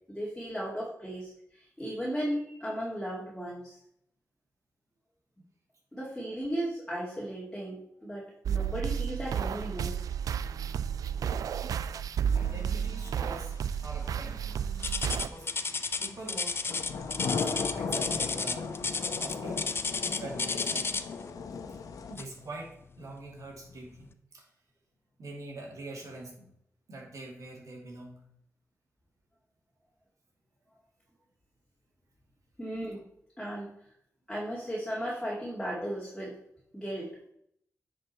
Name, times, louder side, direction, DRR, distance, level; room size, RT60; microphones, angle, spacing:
voice 1, 0.1-3.8 5.9-10.0 32.6-33.0 33.4-33.7 34.3-36.4 36.7-37.1, equal, 10° left, -6 dB, 2.4 m, -36 dB
sound 1, 8.5-15.3, right 8 dB, 90° right, 0.3 m, -32 dB
sound 2, 12.3-22.1, left 5 dB, 85° left, 0.9 m, -37 dB
voice 2, 12.3-14.6 15.0-15.5 16.0-16.8 17.5-18.8 19.2-19.7 20.2-20.9 22.1-24.5 25.2-26.5 26.9-28.2, right 2 dB, 65° right, -1 dB, 2.7 m, -44 dB
sound 3, 14.8-21.2 22.2-22.4 23.0-23.1 23.8-23.9, left 4 dB, 40° left, 0.6 m, -32 dB
9.9 x 5.2 x 4.3 m, 0.73 s
cardioid pair, 85°, 6 cm